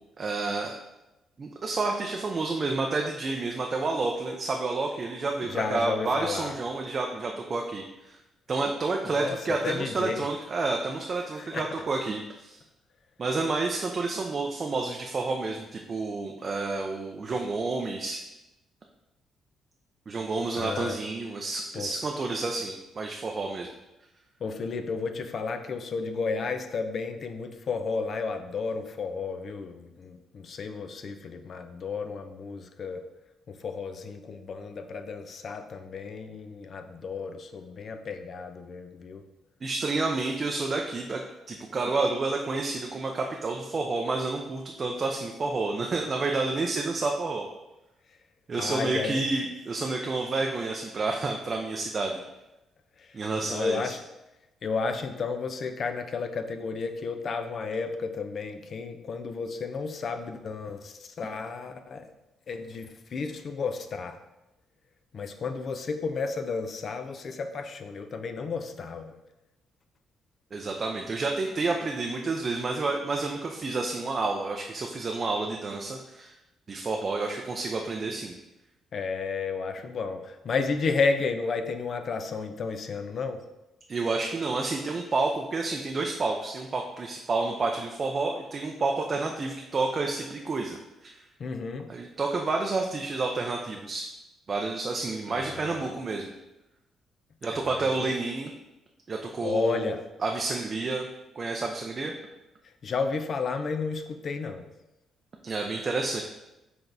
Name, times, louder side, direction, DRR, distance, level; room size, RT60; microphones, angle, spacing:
voice 1, 0.2-0.8 1.4-8.2 8.5-12.6 13.2-18.2 20.1-23.7 39.6-41.2 41.5-47.5 48.5-52.2 53.1-53.9 70.5-76.3 76.7-78.3 83.9-91.2 91.9-94.1 94.5-96.3 97.4-98.5 99.1-99.9 100.2-101.1 101.4-102.1 105.4-106.2, right 3 dB, 40° right, 1 dB, 0.4 m, -30 dB
voice 2, 5.4-6.5 9.0-10.2 11.3-11.7 20.6-21.0 21.7-21.9 24.4-33.0 33.5-39.3 48.5-49.3 53.0-54.0 54.6-62.1 62.5-64.2 65.1-69.2 78.9-83.4 91.4-91.9 95.3-95.9 97.5-98.1 99.4-100.0 102.6-104.7, left 4 dB, 50° left, 8 dB, 0.4 m, -32 dB
5.8 x 3.4 x 2.6 m, 0.98 s
cardioid pair, 90°, 0 cm